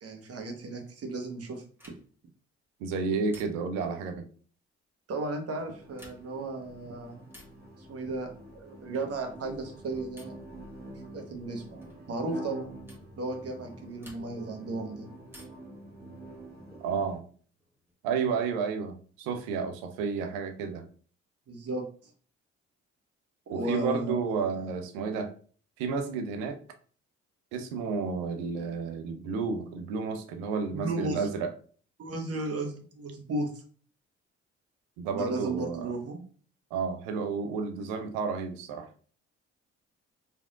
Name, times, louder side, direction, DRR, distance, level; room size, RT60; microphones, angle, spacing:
voice 1, 0.0-1.6 5.1-7.2 7.8-10.4 11.1-12.7 13.2-15.1 21.5-21.8 23.5-24.5 30.7-31.3 32.0-33.5 35.1-36.2, right 2 dB, 45° right, 3 dB, 1.2 m, -35 dB
sound 1, 1.8-2.3 3.3-3.9 5.8-6.5 7.3-7.7 8.9-9.3 10.2-10.5 11.8-12.0 12.9-13.1 14.0-14.6 15.3-15.8 17.2-17.9, equal, 5° right, 1.7 m, -54 dB
voice 2, 2.8-4.2 16.8-17.2 18.0-20.8 23.5-25.3 25.8-26.6 27.5-31.5 35.0-35.9 36.7-38.9, right 5 dB, 70° right, 7 dB, 0.7 m, -31 dB
sound 2, 5.5-17.2, right 1 dB, 25° right, 1.6 m, -47 dB
5.0 x 3.4 x 2.5 m, 0.43 s
figure-of-eight pair, 45°, 35 cm